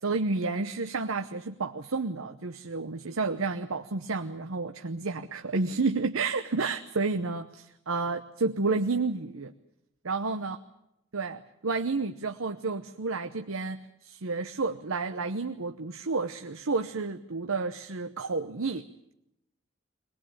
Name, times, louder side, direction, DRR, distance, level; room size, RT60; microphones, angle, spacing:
voice 1, 0.0-9.5 10.0-10.6 11.1-18.8, right 3 dB, 85° right, 7 dB, 0.9 m, -31 dB
22.0 x 20.5 x 8.7 m, 0.82 s
head